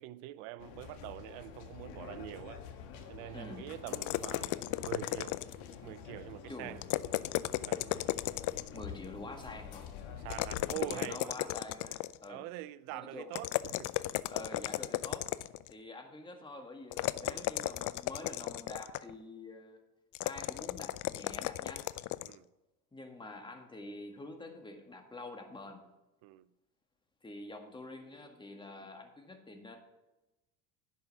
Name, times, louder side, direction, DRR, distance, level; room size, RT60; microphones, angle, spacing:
voice 1, 0.0-2.6 3.1-5.4 5.8-6.8 7.6-7.9 10.1-11.3 12.3-13.9 17.2-17.5 22.2-22.5 26.2-26.5, right 16 dB, 70° right, 0.7 m, -44 dB
sound 1, 0.6-10.7, left 7 dB, 70° left, 1.7 m, -48 dB
voice 2, 3.3-3.7 6.5-6.8 8.7-9.9 10.7-12.5 12.9-13.3 14.3-15.3 15.7-19.8 20.2-21.9 22.9-25.8 27.2-29.8, left 2 dB, 10° left, 1.7 m, -47 dB
sound 2, 3.9-5.7 6.8-8.8 10.3-12.3 13.3-15.7 16.9-19.1 20.1-22.3, left 17 dB, 45° left, 0.5 m, -35 dB
10.5 x 5.6 x 6.9 m
hypercardioid pair, 85°, 44 cm